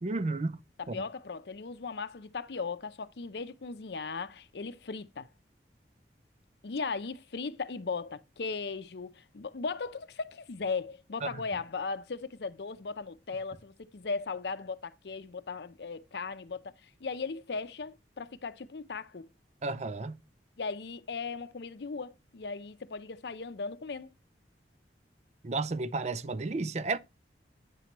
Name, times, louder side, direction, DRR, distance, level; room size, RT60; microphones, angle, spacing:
voice 1, 0.0-0.6 0.9-1.0 19.6-20.2 25.4-27.0, right 3 dB, 40° right, 0.5 m, -32 dB
voice 2, 0.8-5.3 6.6-19.3 20.6-24.1, left 4 dB, 70° left, 0.6 m, -37 dB
9.0 x 5.9 x 3.0 m
head